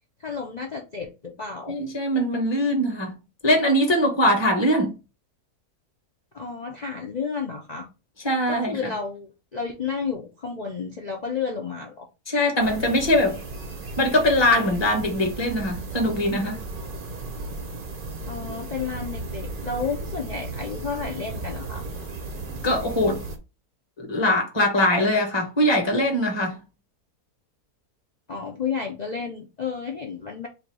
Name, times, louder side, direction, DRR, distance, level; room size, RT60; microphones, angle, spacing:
voice 1, 0.2-1.8 6.3-7.9 8.5-12.1 18.3-21.8 28.3-30.5, left 5 dB, 60° left, 0.4 m, -31 dB
voice 2, 1.7-3.2 3.4-5.0 8.2-8.9 12.3-13.4 14.0-16.6 22.6-23.2 24.0-26.6, left 1 dB, 20° left, 0.9 m, -22 dB
sound 1, 12.6-23.4, right 3 dB, 45° right, 0.7 m, -35 dB
3.4 x 2.7 x 4.6 m
omnidirectional pair, 1.7 m